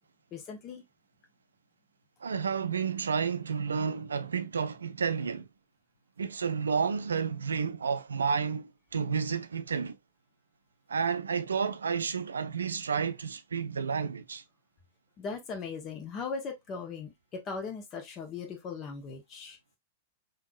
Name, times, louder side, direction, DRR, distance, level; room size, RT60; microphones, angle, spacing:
voice 1, 0.3-0.8 15.2-19.6, left 5 dB, 35° left, 1.2 m, -39 dB
voice 2, 2.2-5.5 6.2-10.0 10.9-14.4, right 6 dB, 80° right, 0.4 m, -31 dB
3.6 x 2.8 x 2.4 m
figure-of-eight pair, 100°, 0 cm